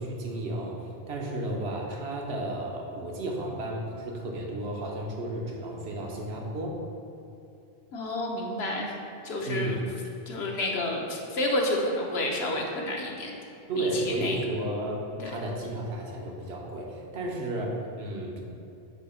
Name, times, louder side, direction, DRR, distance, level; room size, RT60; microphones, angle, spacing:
voice 1, 0.0-6.8 9.5-9.8 13.7-18.4, right 1 dB, 80° right, -1 dB, 1.2 m, -33 dB
voice 2, 7.9-8.9 9.2-9.9 10.3-13.3 13.8-14.4 15.2-15.3, left 1 dB, 85° left, -1 dB, 1.2 m, -30 dB
7.9 x 2.8 x 5.6 m, 2.7 s
omnidirectional pair, 1.1 m